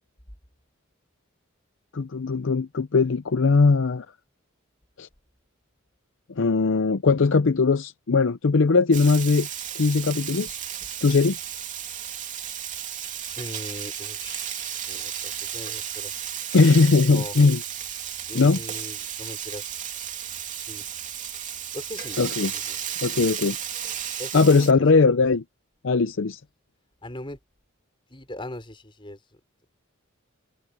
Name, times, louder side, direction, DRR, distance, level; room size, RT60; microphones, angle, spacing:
voice 1, 1.9-4.1 5.0-5.1 6.4-9.5 9.8-10.6 11.0-11.4 16.5-17.6 18.3-18.6 22.2-22.5 23.0-23.6 24.3-25.4 25.8-26.4, left 4 dB, 65° left, 0.6 m, -20 dB
Frying (food), 8.9-24.7, right 9 dB, 40° right, 3.0 m, -34 dB
voice 2, 13.4-16.1 17.0-17.4 18.3-19.7 20.5-20.8 21.7-22.8 24.2-25.3 27.0-27.4 28.1-29.4, left 1 dB, 25° left, 4.8 m, -40 dB
head